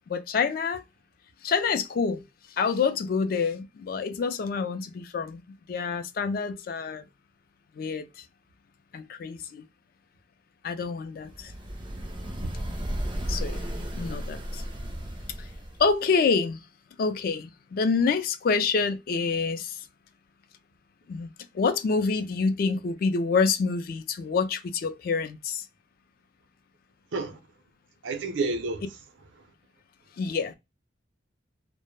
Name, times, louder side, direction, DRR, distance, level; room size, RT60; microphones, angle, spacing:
voice 1, 0.1-0.8 1.4-2.2 2.6-5.4 5.7-7.0 7.8-8.1 8.9-9.6 10.6-11.5 13.3-14.6 15.4-15.5 15.8-16.6 17.0-19.8 21.1-21.3 21.5-25.7 30.2-30.6, left 5 dB, 50° left, 0.3 m, -27 dB
sound 1, 11.3-16.0, equal, 25° right, 0.4 m, -34 dB
voice 2, 28.0-28.9, right 3 dB, 85° right, 0.5 m, -30 dB
2.1 x 2.0 x 3.0 m
head